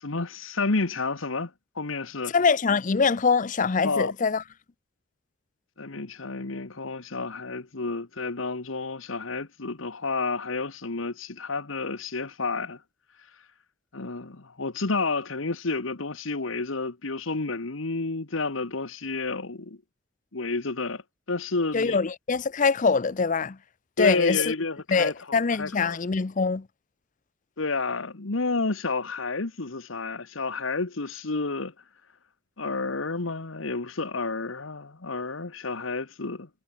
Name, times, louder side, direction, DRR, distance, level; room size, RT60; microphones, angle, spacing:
voice 1, 0.0-2.3 3.8-4.1 5.8-12.8 13.9-19.8 20.3-21.0 21.3-22.0 24.0-26.0 27.6-31.7 32.6-36.5, left 3 dB, 80° left, 1.4 m, -30 dB
voice 2, 2.3-4.4 21.7-23.6 24.0-24.4 24.9-26.6, left 5 dB, 40° left, 0.6 m, -23 dB
head